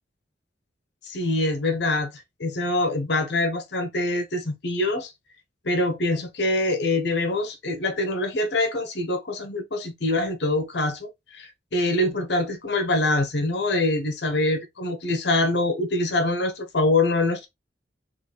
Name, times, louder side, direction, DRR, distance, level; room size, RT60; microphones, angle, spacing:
voice 1, 1.1-5.1 5.6-17.5, left 2 dB, 60° left, 0.8 m, -24 dB
3.8 x 2.4 x 3.1 m
head